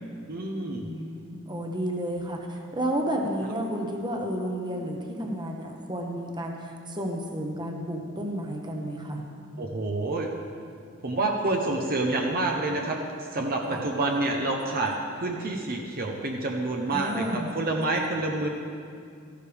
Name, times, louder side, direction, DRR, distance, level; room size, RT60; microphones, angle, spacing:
voice 1, 0.3-0.9 9.6-10.3 11.0-13.0 13.3-18.5, right 2 dB, 45° right, 1 dB, 0.9 m, -28 dB
voice 2, 0.8-9.2 13.7-13.8 16.9-17.5, right 1 dB, 20° right, 2 dB, 1.1 m, -31 dB
14.0 x 11.5 x 3.5 m, 2.4 s
head